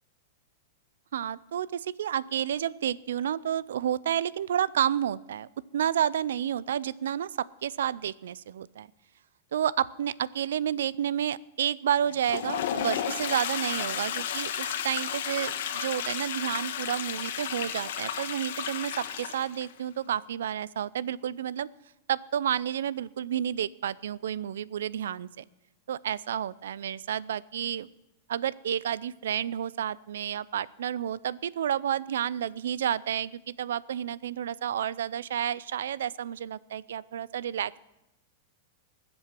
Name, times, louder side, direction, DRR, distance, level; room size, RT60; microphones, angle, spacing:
voice 1, 1.1-8.9 9.5-21.7 22.1-25.4 25.9-27.9 28.3-37.8, right 10 dB, 90° right, 22 dB, 0.5 m, -30 dB
Toilet flush, 12.1-19.7, left 9 dB, 70° left, 1.4 m, -33 dB
20.5 x 7.8 x 6.0 m, 0.89 s
supercardioid pair, 160°, 0 cm